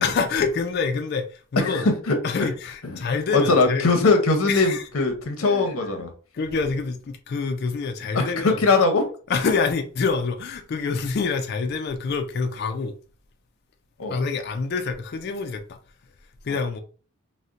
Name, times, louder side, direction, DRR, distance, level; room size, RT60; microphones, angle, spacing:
voice 1, 0.0-1.9 2.2-3.9 4.5-4.8 5.4-6.1 6.3-8.6 9.3-13.0 14.1-15.8 16.4-16.8, left 4 dB, 45° left, 0.3 m, -26 dB
voice 2, 1.6-2.5 2.8-2.9 3.3-6.1 8.1-9.1 14.0-14.2, left 3 dB, 70° left, 0.7 m, -21 dB
4.1 x 2.1 x 2.5 m
head